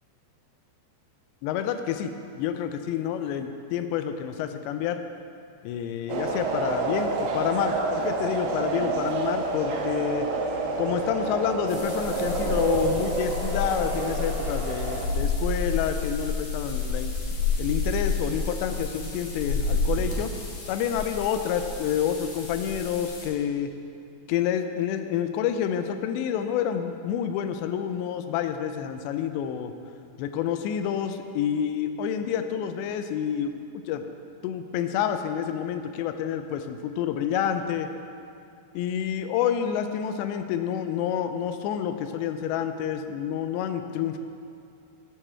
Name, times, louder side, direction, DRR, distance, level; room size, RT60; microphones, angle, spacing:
voice 1, 1.4-5.0 5.6-10.3 10.8-17.1 17.6-20.3 20.7-23.7 24.3-29.7 30.2-33.5 33.9-34.0 34.4-37.9 38.7-44.2, left 9 dB, 90° left, 8 dB, 2.8 m, -28 dB
sound 1, 6.1-15.1, right 3 dB, 80° right, 2.0 m, -29 dB
sound 2, 11.7-23.3, left 3 dB, 60° left, 3.2 m, -30 dB
13.5 x 6.8 x 4.4 m, 2.5 s
omnidirectional pair, 5.0 m